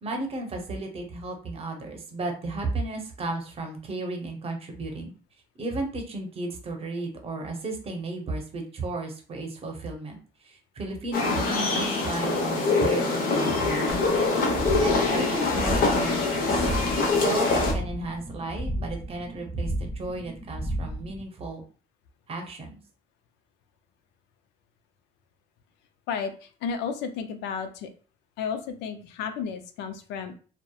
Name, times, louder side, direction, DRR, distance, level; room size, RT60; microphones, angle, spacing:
voice 1, 0.0-5.1 5.6-14.2 14.8-16.7 17.2-21.6 22.3-22.8, right 2 dB, 35° right, 2 dB, 0.7 m, -34 dB
sound 1, 11.1-17.7, left 3 dB, 55° left, 0.8 m, -24 dB
sound 2, 13.9-21.2, right 1 dB, 10° left, 0.5 m, -33 dB
voice 2, 26.1-27.9 28.4-30.3, left 6 dB, 90° left, 8 dB, 0.4 m, -33 dB
2.8 x 2.1 x 2.2 m, 0.39 s
cardioid pair, 110°, 17 cm